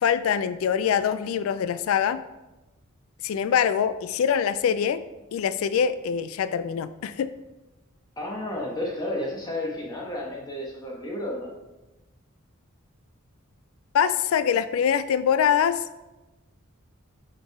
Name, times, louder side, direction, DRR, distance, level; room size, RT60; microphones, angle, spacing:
voice 1, 0.0-2.2 3.2-5.0 5.3-7.3 13.9-15.8, left 8 dB, 70° left, 12 dB, 0.3 m, -24 dB
voice 2, 8.2-11.5, left 1 dB, 20° left, -3 dB, 1.0 m, -32 dB
6.1 x 4.6 x 4.6 m, 1.0 s
head